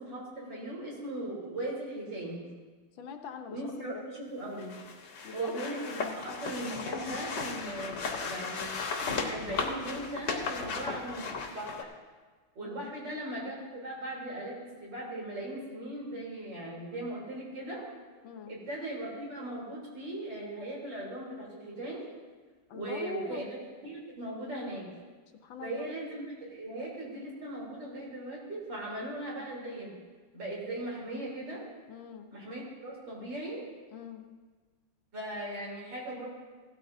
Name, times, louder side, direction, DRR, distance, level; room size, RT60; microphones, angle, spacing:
voice 1, 0.0-2.4 3.5-4.8 5.3-8.7 9.1-11.9 12.6-17.8 18.5-22.1 22.7-23.5 23.8-24.9 25.6-29.9 30.3-31.7 32.3-33.7 35.1-36.3, right 1 dB, 65° right, -4 dB, 4.0 m, -38 dB
voice 2, 2.9-4.0 5.2-5.6 12.6-13.0 18.2-18.6 22.7-23.4 25.4-25.9 31.9-32.3 33.9-34.3, left 6 dB, 80° left, 5 dB, 1.6 m, -43 dB
sound 1, 4.6-11.8, left 4 dB, 65° left, 1.6 m, -36 dB
16.5 x 13.0 x 2.7 m, 1.4 s
omnidirectional pair, 2.1 m